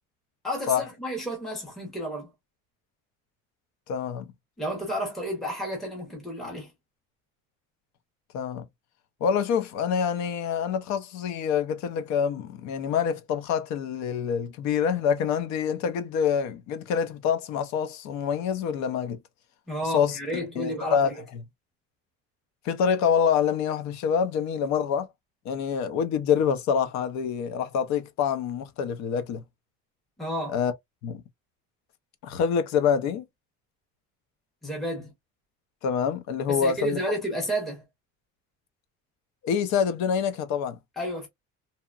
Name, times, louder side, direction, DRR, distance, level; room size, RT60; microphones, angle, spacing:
voice 1, 0.4-2.3 4.6-6.7 19.7-21.1 30.2-30.6 34.6-35.1 36.5-37.8 41.0-41.3, equal, ahead, 0.7 m, -31 dB
voice 2, 3.9-4.3 8.3-8.7 9.2-19.2 19.9-20.2 20.6-21.1 22.6-25.1 25.5-29.4 30.5-30.7 31.0-31.2 32.2-33.2 35.8-37.0 39.4-40.8, left 7 dB, 60° left, 0.6 m, -26 dB
2.8 x 2.1 x 2.3 m
cardioid pair, 165°, 32 cm